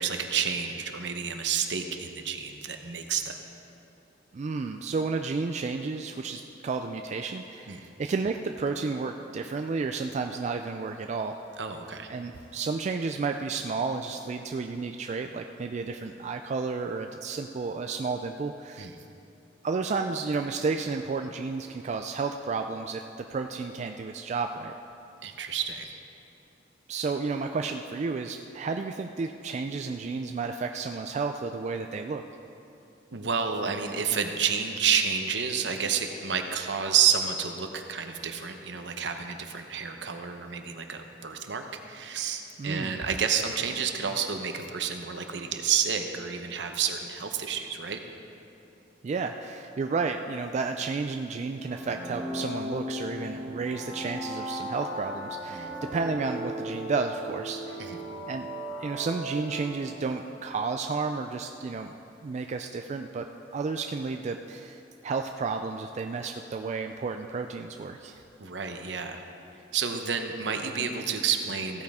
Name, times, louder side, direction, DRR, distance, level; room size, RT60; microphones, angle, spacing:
voice 1, 0.0-3.4 7.7-7.8 11.6-12.1 18.8-18.9 25.2-26.0 33.1-48.0 55.5-55.7 57.8-58.0 68.4-69.2 69.7-71.8, right 7 dB, 70° right, 5 dB, 0.8 m, -30 dB
voice 2, 4.3-11.4 12.1-18.9 19.6-23.0 23.3-24.7 26.9-32.2 42.6-43.0 49.0-57.8 58.3-58.5 58.8-61.9 62.2-63.3 63.5-68.2, right 4 dB, 40° right, 5 dB, 0.3 m, -32 dB
sound 1, 51.6-60.3, equal, 20° left, 3.0 m, -37 dB
15.5 x 9.0 x 3.6 m, 2.8 s
head